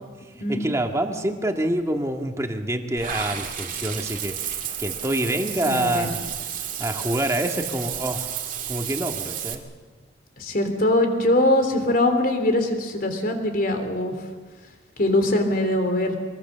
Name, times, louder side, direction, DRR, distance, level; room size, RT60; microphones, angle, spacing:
voice 1, 0.5-6.2 6.8-9.6, right 1 dB, 15° right, 3 dB, 1.9 m, -27 dB
Water / Bathtub (filling or washing), 3.0-9.5, right 9 dB, 50° right, 2.3 m, -32 dB
voice 2, 5.7-6.1 10.4-14.2 15.0-16.2, left 1 dB, 55° left, 5 dB, 3.5 m, -22 dB
24.5 x 22.0 x 6.9 m, 1.4 s
head